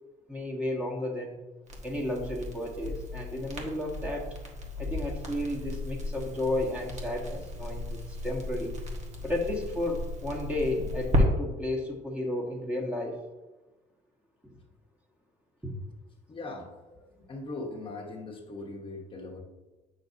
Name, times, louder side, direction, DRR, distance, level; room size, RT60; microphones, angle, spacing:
voice 1, 0.3-1.4 1.8-4.3 4.8-8.8 9.2-13.2 14.4-14.5 15.6-15.7, left 1 dB, 10° right, -2 dB, 1.4 m, -33 dB
Crackle, 1.7-11.2, left 1 dB, 45° right, 1.5 m, -34 dB
voice 2, 16.3-16.7 17.1-19.4, left 2 dB, 30° left, -1 dB, 1.2 m, -40 dB
8.3 x 6.2 x 2.7 m, 1.1 s
cardioid pair, 110°, 17 cm